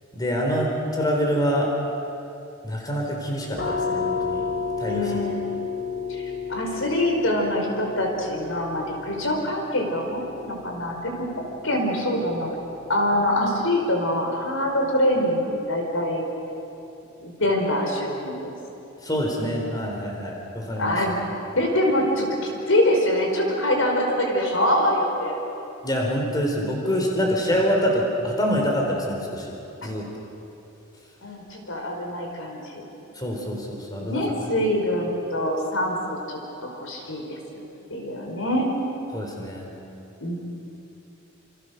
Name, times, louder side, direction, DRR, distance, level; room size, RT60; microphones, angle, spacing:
voice 1, 0.1-1.7 2.6-4.4 4.8-5.1 19.0-21.2 25.8-29.5 29.8-30.1 33.2-34.2 39.1-39.7, equal, 20° left, -1 dB, 4.2 m, -25 dB
sound 1, 3.5-15.0, left 5 dB, 55° left, 2.3 m, -33 dB
voice 2, 4.9-5.5 6.1-11.3 11.6-12.5 12.9-16.2 17.2-18.5 20.8-21.2 21.5-22.3 22.7-25.4 29.8-29.9 31.2-32.8 34.0-37.4 37.9-38.7 40.2-40.4, left 1 dB, 75° left, 1 dB, 5.0 m, -24 dB
28.5 x 28.0 x 6.7 m, 2.9 s
head